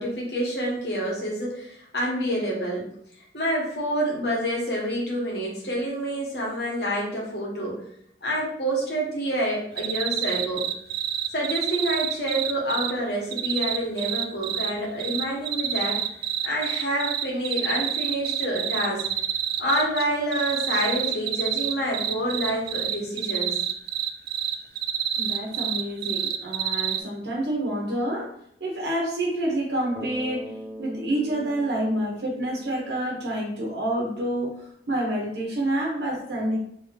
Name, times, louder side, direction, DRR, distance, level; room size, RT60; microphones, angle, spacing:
voice 1, 0.0-2.9 3.3-7.8 8.2-10.6 11.3-16.0 16.4-19.0 19.6-23.5, equal, 70° left, -3 dB, 1.6 m, -27 dB
sound 1, 9.8-12.9 13.3-14.7 15.0-20.0 20.3-27.0, right 10 dB, 55° right, 0.3 m, -27 dB
voice 2, 25.2-28.3 28.6-30.5 30.8-36.6, right 1 dB, 75° right, -2 dB, 1.1 m, -28 dB
Bass guitar, 29.9-33.9, equal, 10° right, 0.8 m, -42 dB
3.4 x 2.9 x 4.4 m, 0.70 s
head